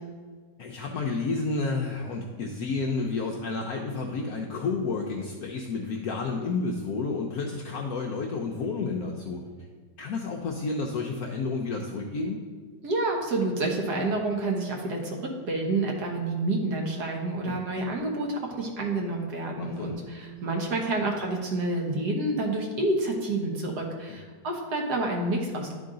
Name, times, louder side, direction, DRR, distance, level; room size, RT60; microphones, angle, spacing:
voice 1, 0.6-9.4 10.0-12.4 17.5-17.6 19.6-20.0, left 3 dB, 70° left, 1 dB, 0.9 m, -30 dB
voice 2, 12.8-25.8, right 2 dB, 60° right, 0 dB, 1.5 m, -29 dB
10.5 x 3.8 x 3.7 m, 1.5 s
omnidirectional pair, 2.0 m